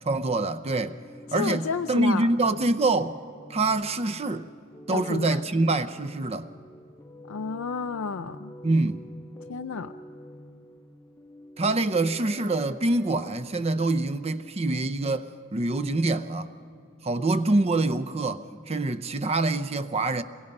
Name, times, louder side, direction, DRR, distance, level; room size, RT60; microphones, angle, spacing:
voice 1, 0.1-1.0 1.3-3.1 3.5-4.5 4.9-6.5 8.6-9.1 11.6-16.5 17.0-20.2, right 2 dB, 30° right, 0.6 m, -25 dB
sound 1, 0.7-15.1 15.3-15.4, equal, 10° left, 0.6 m, -48 dB
voice 2, 1.3-2.3 4.9-5.4 7.3-8.5 9.5-9.9, left 5 dB, 90° left, 0.5 m, -31 dB
27.5 x 22.5 x 5.3 m
head